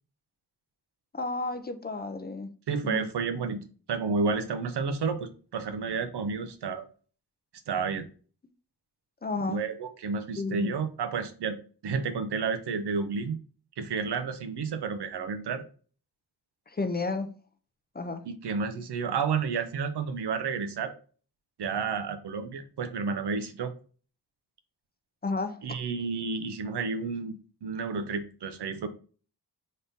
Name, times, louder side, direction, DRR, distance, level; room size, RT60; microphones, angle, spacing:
voice 1, 1.1-2.5 2.8-3.1 9.2-9.6 10.4-10.7 16.7-17.3 17.9-18.2 25.2-25.6, left 3 dB, 25° left, 8 dB, 0.4 m, -32 dB
voice 2, 2.7-6.9 7.7-8.1 9.5-13.4 13.8-15.6 18.2-20.9 21.6-23.7 25.6-28.9, right 5 dB, 90° right, 8 dB, 0.6 m, -31 dB
4.1 x 2.6 x 3.5 m, 0.40 s
wide cardioid pair, 100°, 39 cm